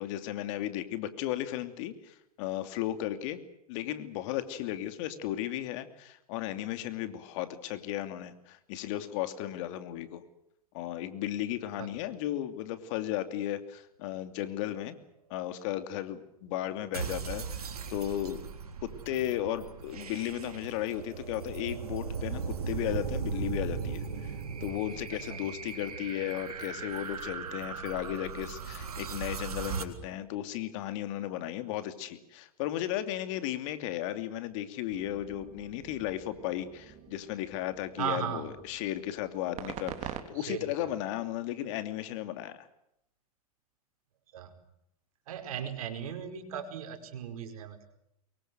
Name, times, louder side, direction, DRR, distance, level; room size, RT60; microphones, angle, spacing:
voice 1, 0.0-3.4 3.7-10.2 10.7-15.0 15.3-18.4 18.8-24.3 24.6-42.7, left 12 dB, 55° left, 10 dB, 2.8 m, -35 dB
sound 1, 16.9-29.8, right 6 dB, 85° right, 3.7 m, -38 dB
voice 2, 25.1-25.4 38.0-38.5 39.6-39.7 40.3-40.9 44.3-44.5 45.3-47.9, right 9 dB, 70° right, 7 dB, 5.0 m, -37 dB
sound 2, 34.9-40.2, right 10 dB, 35° right, 3.7 m, -45 dB
24.5 x 23.0 x 7.8 m, 0.79 s
hypercardioid pair, 105°, 19 cm